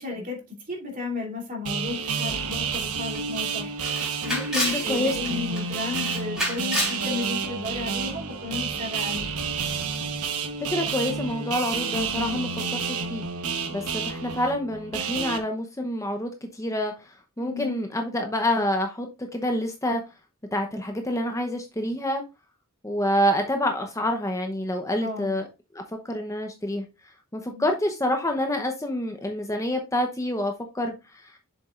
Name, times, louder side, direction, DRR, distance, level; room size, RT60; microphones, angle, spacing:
voice 1, 0.0-3.9 4.2-9.3 17.4-17.8 25.0-25.3 27.5-27.7, left 4 dB, 40° right, 2.8 m, -34 dB
sound 1, 1.6-15.4, right 5 dB, 90° right, 1.1 m, -30 dB
Camera, 2.7-2.8 3.1-3.2 3.8-4.8 5.2-5.6 5.9-7.0, equal, 5° right, 3.8 m, -28 dB
voice 2, 10.6-13.2 13.7-20.0 20.5-22.2 22.8-25.4 25.7-26.8 27.3-31.4, left 1 dB, 15° left, 0.8 m, -27 dB
7.3 x 6.9 x 2.4 m
head